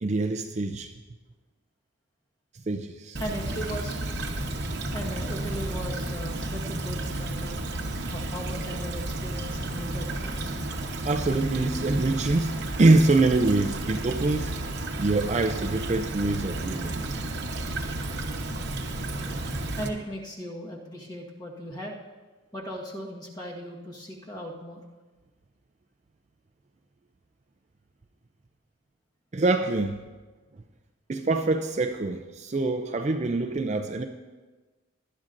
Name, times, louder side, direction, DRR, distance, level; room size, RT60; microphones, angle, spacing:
voice 1, 0.0-0.9 2.7-3.2 11.0-14.5 15.0-17.0 29.3-30.0 31.1-34.1, right 2 dB, 35° right, 6 dB, 0.4 m, -24 dB
voice 2, 3.2-4.0 4.9-7.6 8.1-10.5 19.8-22.0 22.5-24.8, equal, 20° left, -1 dB, 1.4 m, -37 dB
Stream / Trickle dribble, 3.2-19.9, right 2 dB, 55° right, 1.0 m, -32 dB
19.0 x 11.0 x 2.6 m, 1.3 s
head